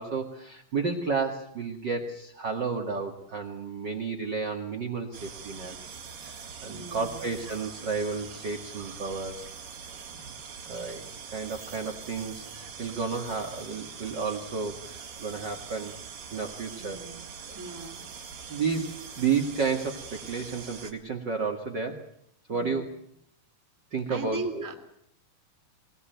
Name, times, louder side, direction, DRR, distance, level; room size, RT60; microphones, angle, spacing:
voice 1, 0.0-5.9 6.2-9.5 10.2-10.3 10.7-11.0 11.3-15.9 16.3-17.0 17.5-17.6 18.5-22.0 22.5-22.9 23.9-24.7, right 5 dB, 40° right, 3 dB, 1.5 m, -32 dB
sound 1, 5.1-20.9, right 6 dB, 60° right, 3.6 m, -43 dB
voice 2, 6.7-7.2 16.8-18.0 22.5-22.8 24.1-24.8, right 3 dB, 5° right, 6 dB, 2.0 m, -38 dB
23.5 x 19.5 x 9.3 m, 0.73 s
omnidirectional pair, 5.0 m